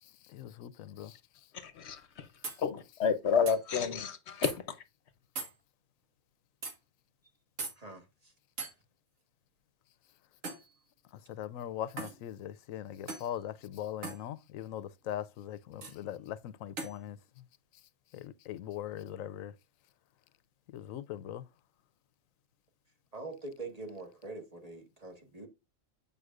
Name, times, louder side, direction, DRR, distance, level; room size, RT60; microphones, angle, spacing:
voice 1, 0.0-1.5 11.0-17.4 17.7-19.6 20.7-21.5, left 11 dB, 90° left, 1.0 m, -41 dB
voice 2, 1.5-2.3 2.6-4.7, left 6 dB, 60° left, 0.9 m, -30 dB
sound 1, 2.4-2.6 3.5-3.6 4.4-4.6 5.4-5.5 6.6-6.8 7.6-7.8 8.6-8.7 10.4-10.7 12.0-12.2 13.1-13.3 14.0-14.2 15.8-16.0 16.8-17.0, right 4 dB, 85° right, 1.9 m, -39 dB
voice 3, 7.8-8.3 23.1-25.5, right 3 dB, 30° right, 1.5 m, -44 dB
8.0 x 5.5 x 2.4 m
omnidirectional pair, 1.3 m